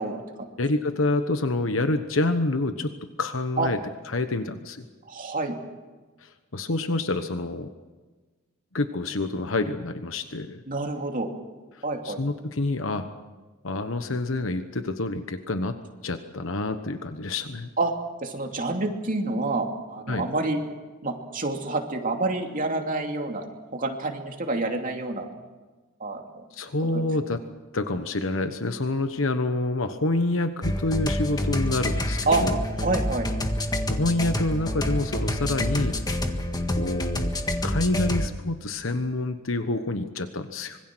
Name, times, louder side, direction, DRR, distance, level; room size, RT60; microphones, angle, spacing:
voice 1, 0.0-0.5 3.6-3.7 5.1-5.6 10.7-11.3 11.8-12.2 17.8-17.9 18.2-20.6 21.0-23.5 23.7-25.3 26.0-26.2 26.9-27.0 32.3-32.4 32.8-33.3, right 2 dB, 45° right, 3 dB, 2.8 m, -28 dB
voice 2, 0.6-2.9 3.2-3.8 4.1-4.8 6.2-7.7 8.7-10.6 11.7-13.1 13.6-15.8 16.0-17.7 20.1-20.3 26.5-27.4 27.7-32.6 33.9-36.0 36.8-37.3 37.6-40.8, left 2 dB, 75° left, 8 dB, 1.2 m, -27 dB
sound 1, 30.6-38.3, left 1 dB, 20° left, 1.7 m, -27 dB
25.5 x 22.5 x 6.3 m, 1.3 s
head